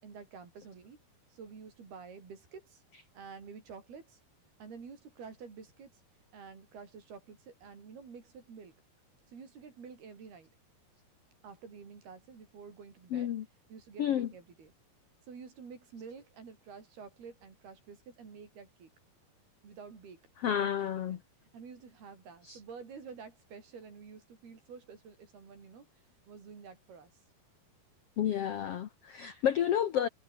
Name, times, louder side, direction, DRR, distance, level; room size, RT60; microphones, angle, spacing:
voice 1, 0.0-1.0 1.3-2.8 3.1-4.2 4.6-6.0 6.3-8.8 9.3-10.5 11.4-13.3 13.7-14.7 15.3-18.9 19.6-20.2 20.5-21.2 21.5-25.9 26.3-27.1, right 5 dB, 85° right, 7.3 m, -49 dB
voice 2, 13.1-13.4 14.0-14.3 20.4-21.2 22.4-22.6 28.2-30.1, left 10 dB, 75° left, 1.3 m, -30 dB
omnidirectional pair, 4.4 m